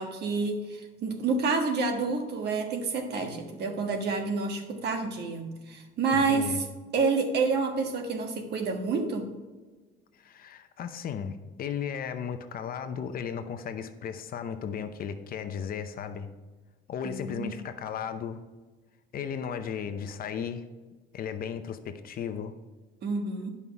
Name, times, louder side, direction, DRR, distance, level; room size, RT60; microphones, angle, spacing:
voice 1, 0.0-6.5 6.9-9.3 17.0-17.5 23.0-23.5, right 4 dB, 55° right, 4 dB, 1.5 m, -29 dB
voice 2, 6.1-6.6 10.1-16.3 16.9-18.4 19.1-20.7 21.1-22.5, left 7 dB, 45° left, 8 dB, 0.7 m, -35 dB
11.5 x 5.6 x 4.7 m, 1.3 s
cardioid pair, 150°, 20 cm